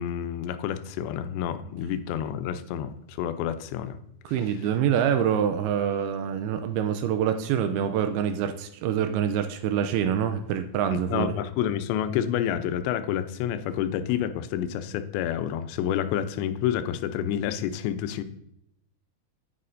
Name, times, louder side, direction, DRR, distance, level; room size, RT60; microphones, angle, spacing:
voice 1, 0.0-4.0 10.9-18.2, left 10 dB, 85° left, 10 dB, 2.8 m, -29 dB
voice 2, 4.3-11.3, right 9 dB, 85° right, 8 dB, 2.3 m, -26 dB
9.7 x 8.9 x 2.6 m, 0.79 s
omnidirectional pair, 5.0 m